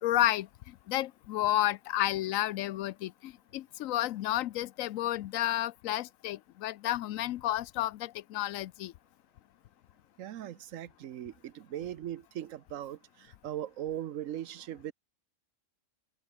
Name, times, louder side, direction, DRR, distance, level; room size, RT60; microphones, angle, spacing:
voice 1, 0.0-0.5 0.9-8.9, left 14 dB, 85° left, 1.0 m, -31 dB
voice 2, 10.2-14.9, right 11 dB, 75° right, 1.1 m, -39 dB
omnidirectional pair, 1.4 m